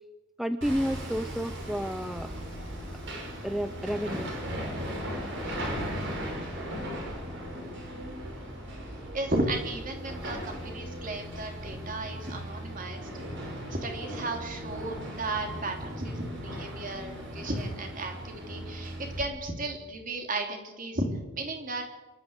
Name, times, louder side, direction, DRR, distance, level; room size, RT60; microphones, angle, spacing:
voice 1, 0.4-2.3 3.4-4.3, equal, ahead, 9 dB, 0.6 m, -31 dB
Hammer, 0.6-19.2, equal, 60° right, 5.9 m, -37 dB
voice 2, 9.1-13.1 13.7-21.1 21.3-21.8, right 2 dB, 40° right, 3 dB, 3.3 m, -34 dB
26.0 x 12.0 x 8.2 m, 1.1 s
head